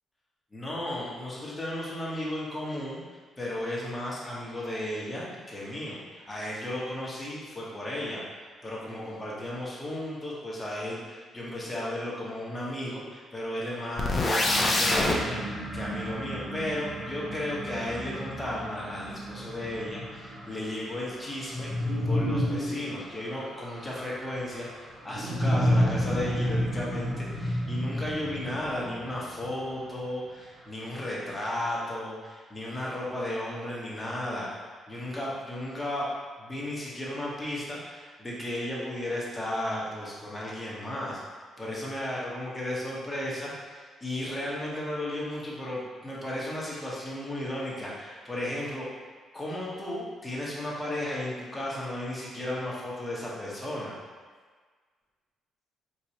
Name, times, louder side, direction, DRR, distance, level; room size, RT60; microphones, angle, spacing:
voice 1, 0.5-3.0 3.4-8.2 8.6-14.2 14.5-21.7 22.1-36.1 36.4-41.2 41.6-48.9 49.3-53.9, left 1 dB, 15° left, -5 dB, 1.0 m, -34 dB
sound 1, 14.0-15.2, left 2 dB, 35° left, 0.5 m, -24 dB
sound 2, 14.4-29.9, equal, 35° right, 0.9 m, -32 dB
3.9 x 2.9 x 2.8 m, 1.5 s
cardioid pair, 90°, 0 cm